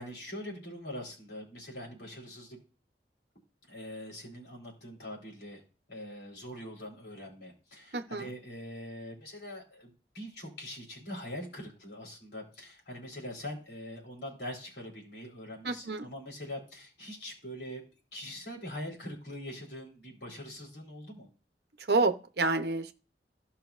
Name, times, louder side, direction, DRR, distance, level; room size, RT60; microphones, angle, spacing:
voice 1, 0.0-2.6 3.7-5.6 5.9-17.8 18.1-21.3, left 1 dB, 70° left, -1 dB, 3.8 m, -43 dB
voice 2, 7.9-8.3 15.6-16.1 21.9-22.9, right 3 dB, 65° right, 8 dB, 0.8 m, -28 dB
15.0 x 5.7 x 2.5 m, 0.34 s
head